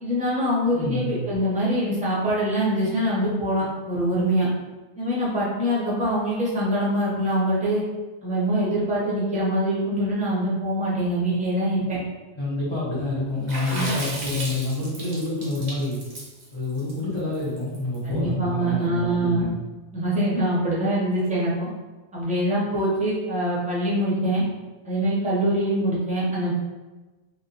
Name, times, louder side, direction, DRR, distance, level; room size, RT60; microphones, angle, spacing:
voice 1, 0.0-4.5 5.0-7.8 8.2-12.0 13.7-13.9 18.0-19.5 19.9-21.7 22.1-24.4 24.8-26.5, right 1 dB, 10° right, -7 dB, 0.6 m, -24 dB
voice 2, 0.7-1.2 12.4-16.0 16.5-19.5, left 2 dB, 40° left, -9 dB, 0.4 m, -28 dB
Water / Splash splatter, 13.5-18.0, right 1 dB, 50° right, 0.5 m, -34 dB
2.8 x 2.0 x 2.5 m, 1.2 s
omnidirectional pair, 1.2 m